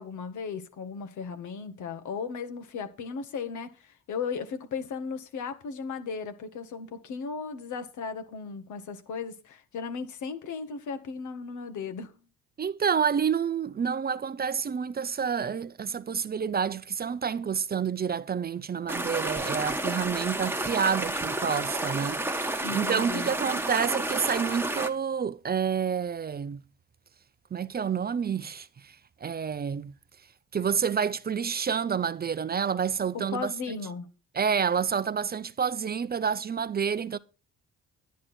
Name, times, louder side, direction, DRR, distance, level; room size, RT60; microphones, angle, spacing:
voice 1, 0.0-12.1 22.6-23.3 33.1-34.1, left 5 dB, 75° left, 1.7 m, -36 dB
voice 2, 12.6-26.6 27.5-29.0 29.2-29.9 30.5-33.5 34.3-37.2, right 7 dB, 30° right, 0.6 m, -29 dB
sound 1, 18.9-24.9, right 2 dB, 5° right, 1.3 m, -31 dB
10.5 x 10.5 x 4.3 m
cardioid pair, 90°, 30 cm